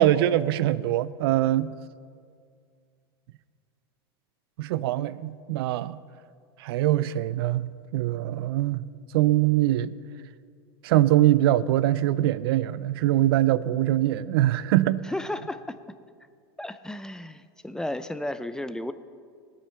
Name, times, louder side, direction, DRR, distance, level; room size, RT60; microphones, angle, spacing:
voice 1, 0.0-1.7 4.6-6.0 6.6-8.8 9.1-9.9 10.8-15.0, right 14 dB, 70° right, 0.5 m, -23 dB
voice 2, 15.0-15.8 16.6-18.9, left 1 dB, 5° left, 0.6 m, -33 dB
18.0 x 8.8 x 5.7 m
hypercardioid pair, 110°, 13 cm